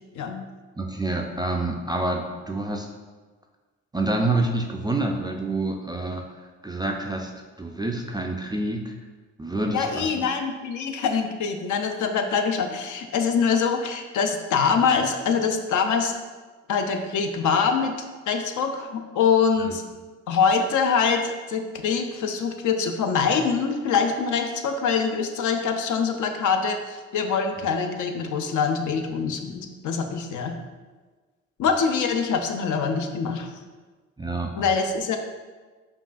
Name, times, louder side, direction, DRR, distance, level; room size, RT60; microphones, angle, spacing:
voice 1, 0.8-2.9 3.9-6.3 6.6-7.3 7.6-8.9 9.4-10.2 19.6-19.7 34.2-34.7, right 2 dB, 15° right, 1 dB, 0.3 m, -27 dB
voice 2, 9.7-16.1 16.7-17.9 18.3-19.8 20.3-30.5 31.6-33.5 34.6-35.2, left 5 dB, 60° left, 5 dB, 0.5 m, -24 dB
5.2 x 2.3 x 2.5 m, 1.4 s
supercardioid pair, 55°, 35 cm